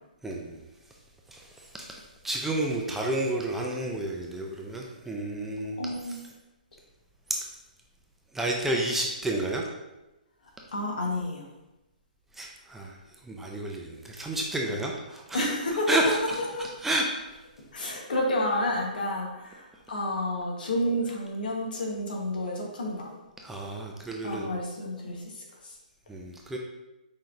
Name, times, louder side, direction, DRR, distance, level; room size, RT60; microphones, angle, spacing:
voice 1, 0.2-0.6 1.3-5.8 6.0-6.2 7.3-7.4 8.3-9.7 12.3-13.0 13.2-15.5 15.9-17.2 23.4-24.5 26.1-26.6, right 1 dB, 5° right, -1 dB, 0.4 m, -31 dB
voice 2, 5.8-6.2 10.7-11.5 15.3-15.9 16.6-16.7 17.7-23.1 24.2-25.7, left 1 dB, 70° left, 0 dB, 1.3 m, -30 dB
5.6 x 3.1 x 2.6 m, 0.99 s
hypercardioid pair, 145°, 5 cm